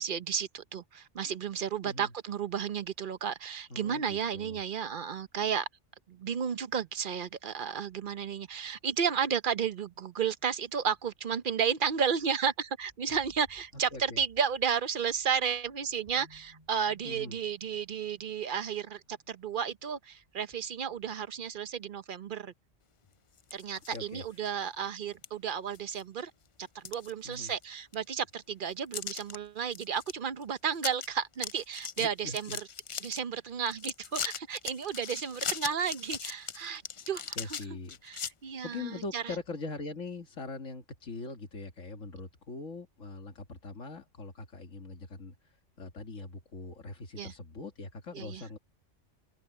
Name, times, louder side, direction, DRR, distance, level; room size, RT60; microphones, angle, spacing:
voice 1, 0.0-5.7 6.1-22.5 23.5-26.3 26.6-32.6 33.0-36.8 37.1-37.6 38.0-39.4 47.2-47.3 48.1-48.4, right 7 dB, 50° right, 0.8 m, -33 dB
voice 2, 3.7-4.6 13.9-14.2 17.1-17.4 23.9-24.2 27.2-27.5 32.0-32.6 37.4-38.0 38.6-45.4 45.8-48.6, left 3 dB, 90° left, 2.3 m, -42 dB
sound 1, 7.6-9.8 10.8-11.1 11.5-12.3 12.7-19.8 20.1-21.3, equal, 30° right, 7.6 m, -64 dB
sound 2, 23.4-24.0 24.4-24.5 25.2-25.3 25.7-26.2 26.6-27.6 27.9-28.0 28.9-29.4 29.7-30.1 30.4-30.5 30.8-31.1 31.3-33.2 33.7-38.3, left 6 dB, 55° left, 0.3 m, -38 dB
omnidirectional pair, 1.3 m